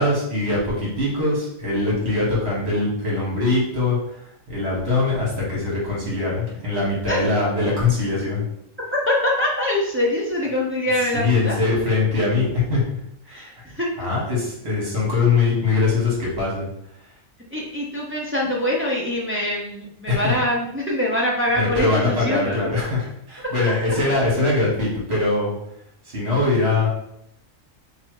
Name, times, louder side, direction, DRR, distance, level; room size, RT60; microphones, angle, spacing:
voice 1, 0.0-4.0 4.5-8.4 11.1-12.8 13.3-13.5 14.0-16.7 20.1-20.4 21.6-25.5 26.1-26.9, left 3 dB, 50° right, -5 dB, 1.9 m, -22 dB
voice 2, 9.1-11.6 13.3-13.9 17.5-22.7 23.6-23.9, left 1 dB, 15° right, -4 dB, 0.5 m, -24 dB
3.3 x 2.7 x 4.5 m, 0.75 s
omnidirectional pair, 1.4 m